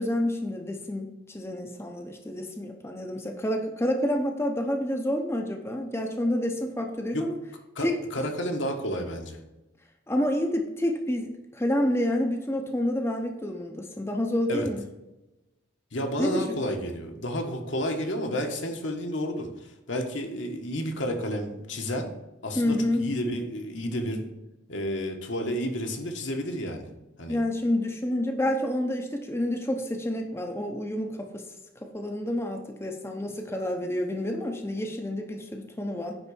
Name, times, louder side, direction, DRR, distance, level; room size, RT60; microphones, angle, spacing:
voice 1, 0.0-7.4 7.8-7.9 10.1-14.8 16.2-16.4 22.5-23.0 27.3-31.4 31.8-36.2, left 1 dB, 15° left, 3 dB, 0.8 m, -28 dB
voice 2, 7.7-9.4 14.5-14.7 15.9-22.1 22.4-24.3 24.7-26.9 27.2-27.4, equal, 65° left, 3 dB, 1.5 m, -31 dB
9.8 x 4.0 x 7.1 m, 0.98 s
head